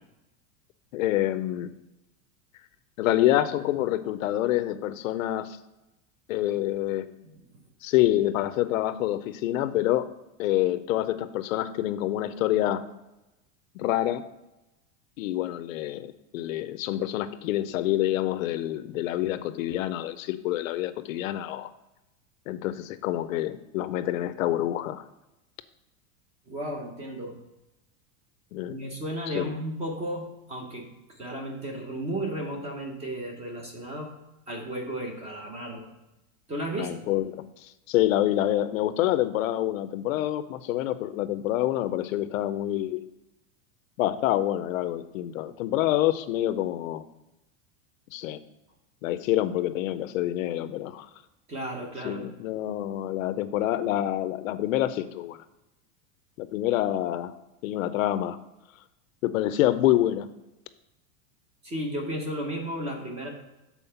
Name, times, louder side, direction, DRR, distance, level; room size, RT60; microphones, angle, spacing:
voice 1, 0.9-1.7 3.0-5.6 6.3-7.1 7.8-10.1 10.4-12.8 13.7-14.2 15.2-21.7 22.5-25.0 28.5-28.8 29.3-29.5 36.8-43.0 44.0-47.0 48.1-48.4 49.0-51.1 52.0-55.4 56.4-57.3 57.6-58.4 59.2-60.3, left 14 dB, 75° left, 13 dB, 0.6 m, -27 dB
voice 2, 26.5-27.3 28.7-30.9 31.2-34.1 34.5-35.9 36.5-37.1 51.5-52.2 61.6-63.3, right 1 dB, 15° right, 2 dB, 0.8 m, -34 dB
7.1 x 4.4 x 5.6 m, 0.97 s
supercardioid pair, 175°, 40 cm